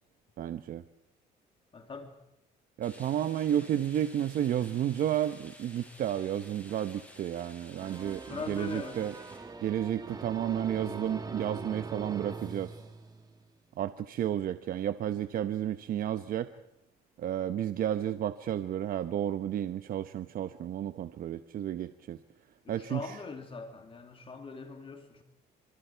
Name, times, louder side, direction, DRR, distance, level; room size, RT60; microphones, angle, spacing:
voice 1, 0.4-0.8 2.8-9.1 9.6-12.7 13.8-16.5 17.2-22.2 22.7-23.2, right 10 dB, 60° right, 11 dB, 1.0 m, -32 dB
voice 2, 1.7-2.1 8.3-9.0 22.6-25.2, left 4 dB, 30° left, 5 dB, 2.6 m, -41 dB
sound 1, 2.8-9.4, left 1 dB, 10° left, 7.8 m, -53 dB
sound 2, 7.8-13.5, right 4 dB, 25° right, 2.9 m, -42 dB
29.5 x 26.0 x 4.6 m, 0.86 s
cardioid pair, 110°, 17 cm